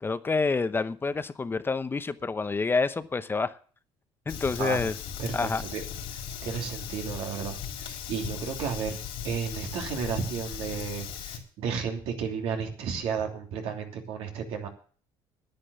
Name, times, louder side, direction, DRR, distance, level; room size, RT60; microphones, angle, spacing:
voice 1, 0.0-3.6 4.3-4.9 5.3-5.6, left 4 dB, 20° left, 12 dB, 0.8 m, -28 dB
Fire, 4.3-11.4, left 8 dB, 70° left, 3.3 m, -38 dB
voice 2, 5.2-5.8 6.1-9.0 9.2-14.7, right 6 dB, 75° right, 3 dB, 2.9 m, -33 dB
10.0 x 9.8 x 6.9 m, 0.43 s
supercardioid pair, 90°, 10 cm